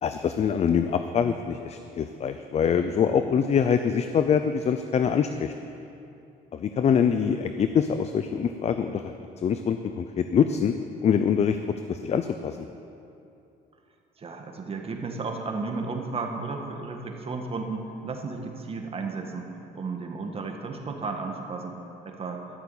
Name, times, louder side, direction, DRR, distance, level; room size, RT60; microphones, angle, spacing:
voice 1, 0.0-5.5 6.5-9.1 9.4-10.7 11.0-11.6 11.9-12.6, left 7 dB, 40° left, 9 dB, 0.6 m, -24 dB
voice 2, 14.2-19.4 19.7-21.7 22.0-22.4, right 4 dB, 35° right, 3 dB, 1.7 m, -33 dB
13.5 x 6.9 x 8.8 m, 2.7 s
cardioid pair, 110°, 17 cm